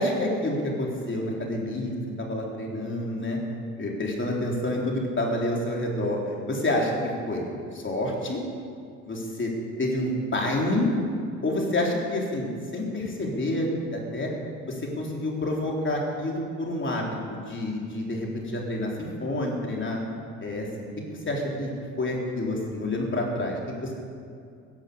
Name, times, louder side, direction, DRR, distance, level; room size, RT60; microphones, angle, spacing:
voice 1, 0.0-3.4 3.8-6.9 7.3-7.4 7.7-8.4 9.1-9.5 9.8-10.9 11.4-14.3 14.7-20.0 20.4-20.9 21.3-21.7 22.0-23.9, left 1 dB, 30° left, -1 dB, 4.0 m, -28 dB
16.0 x 11.0 x 7.0 m, 2.3 s
hypercardioid pair, 65°, 40 cm